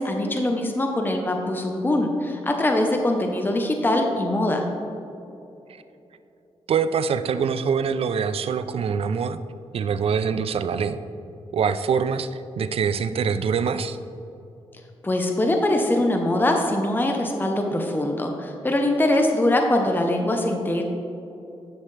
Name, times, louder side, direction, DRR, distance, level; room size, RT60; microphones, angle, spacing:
voice 1, 0.0-4.7 15.0-20.8, left 1 dB, 20° left, 3 dB, 0.8 m, -22 dB
voice 2, 6.7-9.4 9.7-11.0 11.5-14.0, right 6 dB, 70° right, 12 dB, 0.4 m, -24 dB
11.0 x 6.5 x 3.3 m, 2.8 s
cardioid pair, 80°, 10 cm